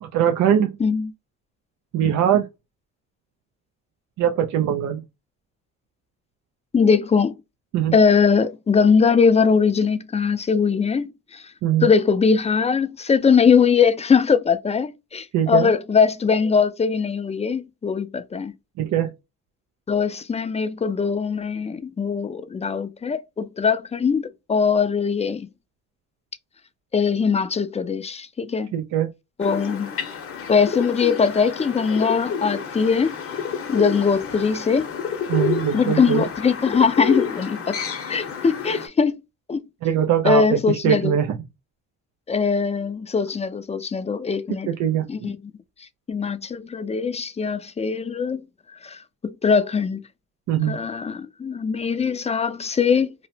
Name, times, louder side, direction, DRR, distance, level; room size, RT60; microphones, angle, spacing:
voice 1, 0.0-0.7 1.9-2.5 4.2-5.0 7.7-8.0 11.6-11.9 15.3-15.7 18.8-19.1 28.7-29.1 35.3-36.2 39.8-41.4 44.7-45.1 50.5-50.8, right 9 dB, 70° right, 0.5 m, -21 dB
voice 2, 0.8-1.1 6.7-7.3 7.9-11.4 11.8-18.5 19.9-25.5 26.9-28.7 29.4-29.9 30.5-33.2 33.7-34.9 35.7-37.8 38.1-39.2 39.5-39.6 40.2-41.1 42.3-44.7 45.1-45.4 46.1-48.5 48.8-50.0 50.7-53.1, left 5 dB, 20° left, 0.4 m, -21 dB
sound 1, 29.4-38.9, left 6 dB, 50° left, 0.8 m, -29 dB
2.9 x 2.1 x 2.6 m
cardioid pair, 90°, 30 cm